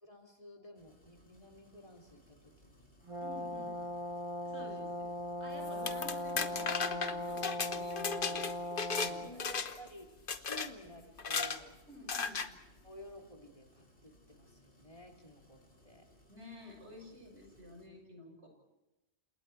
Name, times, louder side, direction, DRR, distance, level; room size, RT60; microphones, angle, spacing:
voice 1, 0.0-2.9 3.5-3.7 5.6-5.9 9.2-11.8 12.8-16.1, equal, 30° left, 3 dB, 2.9 m, -53 dB
sound 1, 0.7-17.9, equal, 75° left, 6.5 m, -65 dB
Brass instrument, 3.1-9.3, left 1 dB, 30° right, 1.3 m, -39 dB
voice 2, 3.2-3.8 4.4-5.1 5.4-8.5 9.0-9.7 11.9-12.5 16.3-18.5, equal, 90° right, 2 dB, 6.9 m, -51 dB
sound 2, 5.6-9.1 9.4-9.9 10.3-10.7 11.2-11.6 12.1-12.5, left 5 dB, 55° left, 1.3 m, -35 dB
30.0 x 27.5 x 4.6 m, 0.96 s
omnidirectional pair, 1.1 m